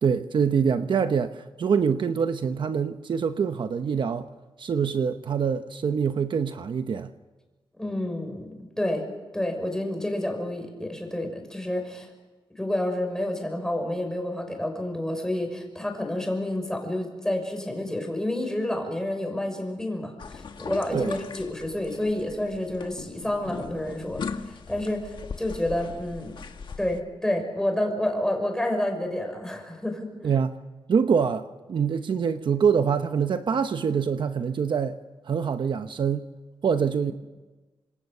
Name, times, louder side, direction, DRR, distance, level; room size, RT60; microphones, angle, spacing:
voice 1, 0.0-4.3 4.6-7.1 20.9-21.1 30.2-30.6 30.9-35.0 35.2-36.3 36.6-37.1, right 6 dB, 60° right, 8 dB, 0.9 m, -25 dB
voice 2, 7.8-9.0 9.3-12.1 12.6-26.3 26.8-30.1, left 1 dB, 5° left, 3 dB, 5.9 m, -29 dB
sound 1, 20.2-27.0, left 5 dB, 60° left, 1.6 m, -39 dB
28.5 x 26.5 x 6.7 m, 1.2 s
wide cardioid pair, 150°, 9 cm